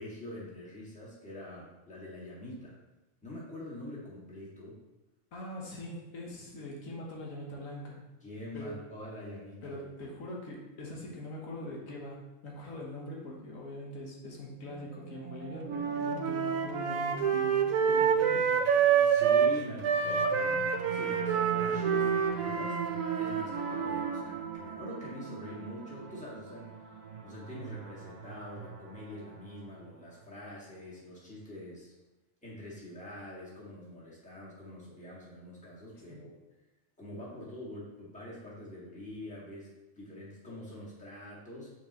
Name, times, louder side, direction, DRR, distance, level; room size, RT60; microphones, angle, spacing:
voice 1, 0.0-2.8 3.2-4.8 8.2-9.8 19.0-26.9 27.2-31.9 32.4-36.4 37.0-39.7 40.0-41.7, left 1 dB, 5° left, -7 dB, 1.8 m, -45 dB
voice 2, 5.3-8.0 8.5-8.9 9.6-18.5 36.1-36.2, left 1 dB, 80° left, -2 dB, 1.6 m, -42 dB
sound 1, 14.6-29.9, right 8 dB, 55° right, 0.5 m, -41 dB
sound 2, 15.7-19.5 19.8-24.2, right 7 dB, 80° right, 1.1 m, -27 dB
9.2 x 4.4 x 3.0 m, 0.98 s
omnidirectional pair, 1.4 m